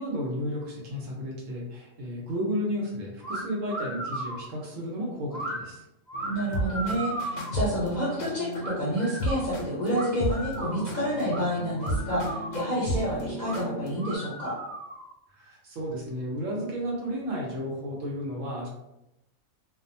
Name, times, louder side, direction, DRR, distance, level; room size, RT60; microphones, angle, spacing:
voice 1, 0.0-5.8 15.3-18.7, equal, 75° right, -3 dB, 1.1 m, -33 dB
sound 1, 3.2-3.4 3.7-4.4 5.3-5.6 6.1-7.6 8.6-9.4 9.9-10.9 11.3-11.4 11.8-12.8 13.4-13.6 14.0-15.1, right 1 dB, ahead, 0.5 m, -36 dB
sound 2, 6.1-14.2, equal, 75° left, 0.9 m, -34 dB
voice 2, 6.3-14.6, equal, 45° left, -7 dB, 0.6 m, -29 dB
2.6 x 2.1 x 2.6 m, 0.89 s
omnidirectional pair, 1.4 m